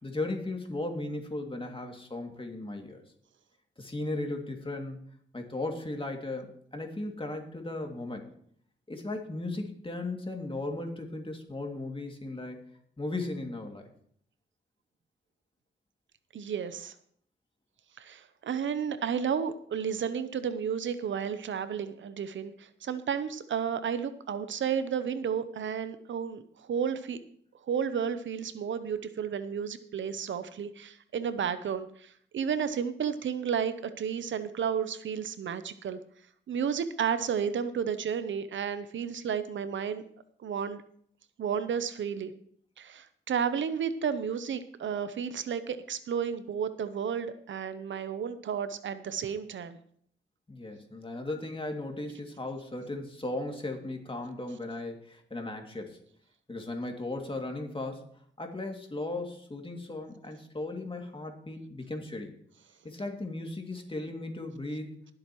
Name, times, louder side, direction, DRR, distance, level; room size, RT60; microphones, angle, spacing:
voice 1, 0.0-3.0 3.8-5.0 5.3-8.3 8.9-12.6 13.0-13.8 50.5-56.0 56.5-58.0 58.4-62.3 62.8-64.9, left 2 dB, 25° left, 3 dB, 2.4 m, -36 dB
voice 2, 16.3-16.9 18.0-27.2 27.7-36.0 36.5-40.0 40.4-40.8 41.4-42.3 42.8-49.8, right 7 dB, 80° right, 12 dB, 0.7 m, -32 dB
20.5 x 7.7 x 3.1 m, 0.62 s
cardioid pair, 50°, 19 cm